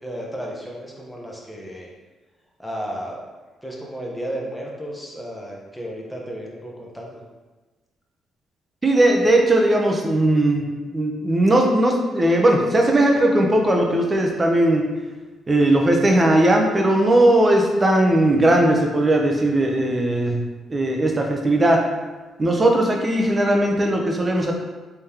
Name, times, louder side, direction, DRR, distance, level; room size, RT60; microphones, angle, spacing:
voice 1, 0.0-1.9 2.6-3.2 3.6-7.2, equal, 5° left, -2 dB, 0.8 m, -33 dB
voice 2, 8.8-10.7 10.9-14.8 15.5-21.8 22.4-24.5, right 1 dB, 25° right, 1 dB, 0.7 m, -18 dB
3.6 x 3.4 x 2.9 m, 1.2 s
cardioid pair, 90°, 0 cm